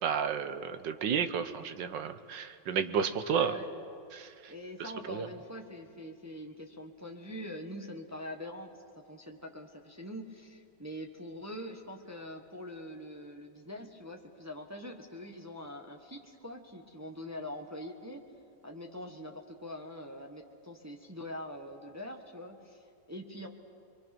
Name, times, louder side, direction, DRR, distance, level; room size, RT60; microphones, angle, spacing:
voice 1, 0.0-3.5 4.1-4.3 5.1-5.3, right 7 dB, 80° right, 10 dB, 1.7 m, -31 dB
voice 2, 3.3-3.7 4.5-8.7 9.1-18.2 18.6-23.5, left 1 dB, 10° right, 1 dB, 1.2 m, -44 dB
25.5 x 23.0 x 6.1 m, 2.4 s
omnidirectional pair, 1.9 m